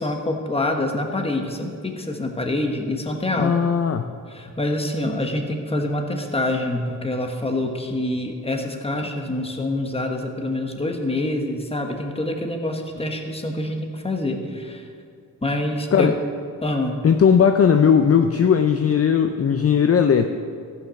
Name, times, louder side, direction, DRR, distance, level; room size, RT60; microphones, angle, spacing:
voice 1, 0.0-3.5 3.9-4.0 4.3-14.8 15.4-16.1 16.6-17.0, left 1 dB, 15° left, 3 dB, 1.2 m, -26 dB
voice 2, 3.4-4.1 15.9-16.2 17.0-20.3, left 7 dB, 45° left, 7 dB, 0.5 m, -17 dB
14.5 x 5.9 x 6.4 m, 2.3 s
wide cardioid pair, 105°, 34 cm